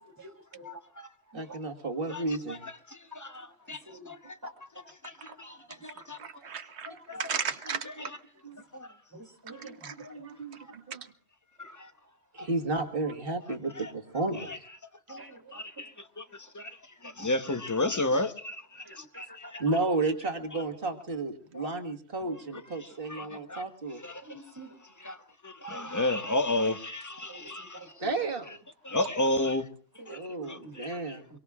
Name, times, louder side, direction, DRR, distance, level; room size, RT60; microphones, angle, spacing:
voice 1, 0.0-0.8 1.5-1.6 3.9-4.1 4.4-4.5 9.1-9.9 15.1-15.4 18.9-19.0 19.3-19.8 22.2-22.4 24.3-24.7 27.3-27.9 30.0-30.8, right 1 dB, 20° right, 1.9 m, -47 dB
voice 2, 0.6-1.1 2.1-4.4 5.0-6.2 7.1-7.2 8.7-9.0 9.5-9.7 11.6-11.9 12.4-12.5 13.8-13.9 14.4-14.6 15.1-15.2 15.5-19.6 21.5-21.7 23.1-23.6 24.0-24.4 25.0-25.2 25.4-27.9 28.8-29.7 30.1-30.2 30.5-31.2, left 2 dB, 20° left, 0.9 m, -33 dB
voice 3, 1.3-2.7 5.4-5.9 6.9-7.0 8.4-8.5 9.5-11.0 12.3-14.7 19.6-24.0 28.0-28.5 30.1-31.3, right 3 dB, 60° right, 1.9 m, -33 dB
voice 4, 6.0-6.9 7.2-7.9 9.6-10.1, right 6 dB, 85° right, 1.3 m, -36 dB
25.5 x 22.5 x 2.4 m
omnidirectional pair, 1.1 m